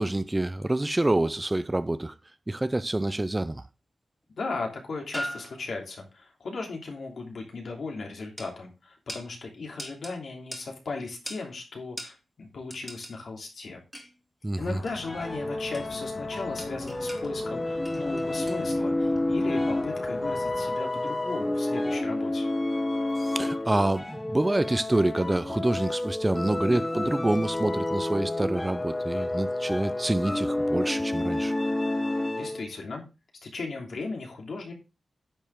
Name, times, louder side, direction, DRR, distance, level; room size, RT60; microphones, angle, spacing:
voice 1, 0.0-2.1 2.5-3.6 14.4-14.8 23.2-31.5, right 1 dB, 15° right, 0.5 m, -27 dB
sound 1, 2.9-3.4 4.5-4.6 5.1-6.0 8.4-8.5 9.1-9.3 9.8-10.2 10.5-10.7 11.3-11.5 12.0-12.2 12.7-13.2 13.9-14.2 14.9-15.1 15.7-16.1 16.3-17.3 17.8-18.7 19.1-19.2, equal, ahead, 2.4 m, -40 dB
voice 2, 4.4-13.8 14.6-22.4 32.3-33.1 33.4-34.7, left 3 dB, 65° left, 3.1 m, -37 dB
sound 2, 14.6-20.7, left 2 dB, 50° left, 2.5 m, -44 dB
sound 3, 15.0-32.7, left 1 dB, 15° left, 1.0 m, -30 dB
10.0 x 7.2 x 3.6 m
wide cardioid pair, 130°, 0 cm